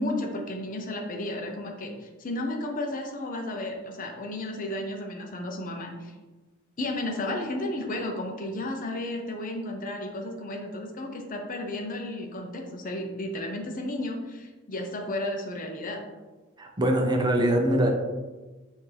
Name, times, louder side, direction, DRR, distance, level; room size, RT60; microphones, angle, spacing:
voice 1, 0.0-6.1 6.8-16.1, left 1 dB, 40° left, 2 dB, 0.6 m, -33 dB
voice 2, 16.6-17.9, right 1 dB, 20° right, 1 dB, 0.6 m, -23 dB
5.6 x 2.7 x 3.3 m, 1.2 s
head